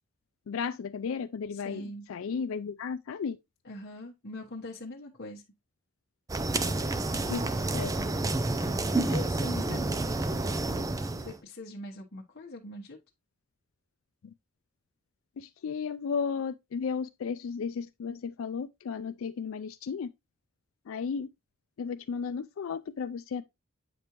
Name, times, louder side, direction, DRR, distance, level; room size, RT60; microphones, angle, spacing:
voice 1, 0.5-3.4 7.3-8.0 15.4-20.1 20.9-21.3 21.8-23.4, left 6 dB, 85° left, 0.4 m, -34 dB
voice 2, 1.5-2.1 3.6-5.4 8.9-9.9 11.2-13.0, left 1 dB, 55° left, 1.1 m, -42 dB
sound 1, 6.3-11.4, right 2 dB, 15° right, 0.5 m, -29 dB
8.5 x 5.2 x 3.0 m
head